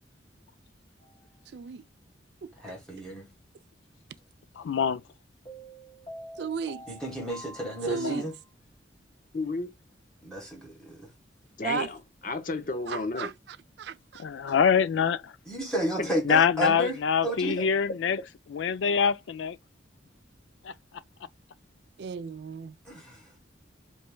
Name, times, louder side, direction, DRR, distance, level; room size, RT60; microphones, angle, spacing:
sound 1, 1.0-1.3 5.5-8.5, right 1 dB, 25° left, 2.3 m, -47 dB
voice 1, 1.5-1.8 2.4-2.5 6.4-6.9 7.8-8.3 11.6-11.9 12.9-14.3 22.0-22.8, right 6 dB, 60° right, 0.3 m, -35 dB
voice 2, 2.6-3.2 6.9-8.3 10.2-11.0 15.5-17.0 17.2-17.6 22.9-23.2, right 1 dB, 5° left, 1.2 m, -32 dB
voice 3, 4.6-5.0 7.8-8.2 14.2-15.3 16.2-18.2 18.5-19.6 20.6-20.7, left 6 dB, 75° left, 0.3 m, -25 dB
voice 4, 9.3-9.7 11.6-13.3 16.0-16.1 17.6-17.7, left 3 dB, 45° left, 0.7 m, -32 dB
4.3 x 3.1 x 2.2 m
head